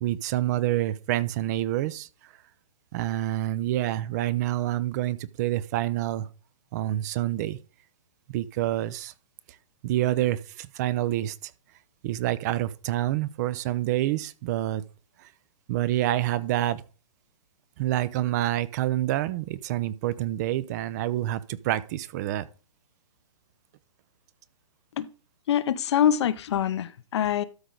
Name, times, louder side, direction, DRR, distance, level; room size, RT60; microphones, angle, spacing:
voice 1, 0.0-2.1 2.9-6.3 6.7-7.6 8.3-9.1 9.8-11.5 12.0-14.8 15.7-16.8 17.8-22.5, right 14 dB, 30° right, 0.6 m, -27 dB
voice 2, 25.5-27.4, left 10 dB, 55° left, 0.7 m, -24 dB
13.0 x 4.9 x 3.9 m
hypercardioid pair, 155°, 17 cm